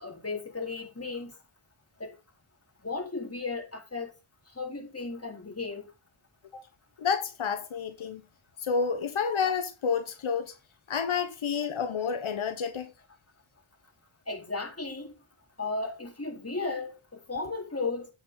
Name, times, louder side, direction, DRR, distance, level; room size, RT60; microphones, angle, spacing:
voice 1, 0.0-1.4 2.0-2.1 2.8-4.1 4.6-5.9 14.3-15.1 15.6-18.1, left 3 dB, 30° left, 4.1 m, -35 dB
voice 2, 7.0-8.2 8.6-10.5 10.9-12.9, left 6 dB, 85° left, 1.2 m, -29 dB
9.1 x 8.2 x 4.0 m
cardioid pair, 60°, 47 cm